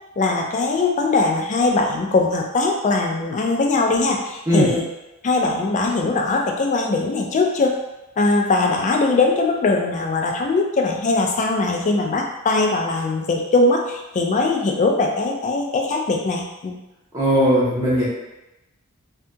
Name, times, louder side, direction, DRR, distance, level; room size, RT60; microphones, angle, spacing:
voice 1, 0.2-4.8 5.2-7.8 8.2-16.7, left 3 dB, 35° left, 1 dB, 0.3 m, -20 dB
voice 2, 4.5-4.8 17.1-18.1, equal, 15° right, -9 dB, 0.6 m, -18 dB
2.6 x 2.6 x 2.3 m, 0.98 s
head